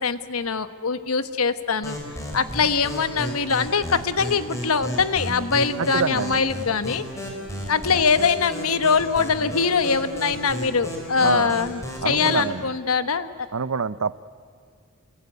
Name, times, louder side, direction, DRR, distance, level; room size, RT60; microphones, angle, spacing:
voice 1, 0.0-2.0 2.3-7.0 7.7-13.5, left 5 dB, 85° left, 12 dB, 1.2 m, -23 dB
sound 1, 1.8-12.5, equal, 15° left, 5.6 m, -34 dB
voice 2, 5.8-6.4 11.2-11.6 12.0-12.6 13.5-14.2, right 5 dB, 70° right, 17 dB, 0.7 m, -26 dB
28.0 x 22.0 x 9.6 m, 2.1 s
head